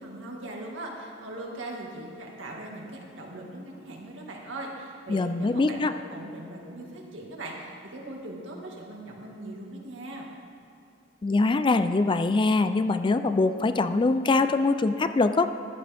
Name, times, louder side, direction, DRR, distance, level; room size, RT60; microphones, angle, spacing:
voice 1, 0.0-10.3, right 1 dB, 90° right, -1 dB, 2.0 m, -40 dB
voice 2, 5.1-5.9 11.2-15.5, left 3 dB, 25° left, 10 dB, 0.4 m, -23 dB
14.5 x 11.0 x 3.5 m, 2.6 s
head